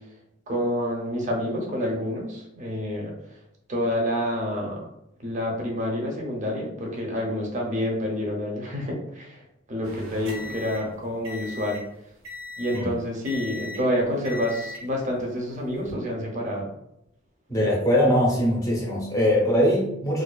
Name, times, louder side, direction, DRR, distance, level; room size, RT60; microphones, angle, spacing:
voice 1, 0.5-3.1 3.7-4.8 5.2-9.4 9.7-11.8 12.6-16.7, equal, 40° right, 0 dB, 0.6 m, -28 dB
sound 1, 9.8-11.9 12.2-12.9 13.2-13.9 14.2-14.9 15.7-15.9, left 2 dB, 85° right, 0.6 m, -38 dB
voice 2, 17.5-20.2, equal, 15° left, -4 dB, 0.6 m, -21 dB
2.4 x 2.3 x 2.2 m, 0.81 s
head